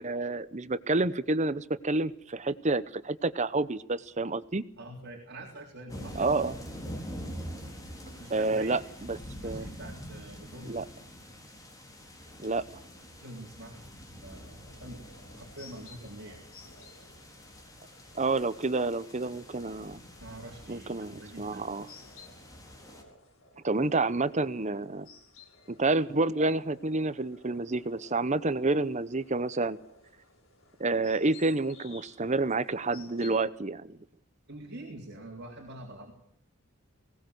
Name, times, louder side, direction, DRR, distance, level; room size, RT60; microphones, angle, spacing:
voice 1, 0.0-4.6 6.2-6.5 8.3-8.8 9.1-9.2 9.4-9.7 10.7-10.8 12.4-12.6 18.1-20.0 20.7-21.9 23.6-25.1 25.7-29.8 30.8-34.0, right 2 dB, 35° right, 15 dB, 0.8 m, -29 dB
voice 2, 4.8-6.6 8.2-8.8 9.4-10.8 13.2-15.0 15.3-16.4 20.2-21.7 34.5-36.1, right 1 dB, 50° right, 0 dB, 3.7 m, -45 dB
sound 1, 5.9-23.0, equal, 15° left, 3.9 m, -45 dB
sound 2, 14.3-33.4, left 4 dB, 65° left, 4.0 m, -56 dB
20.0 x 18.5 x 8.0 m, 0.67 s
head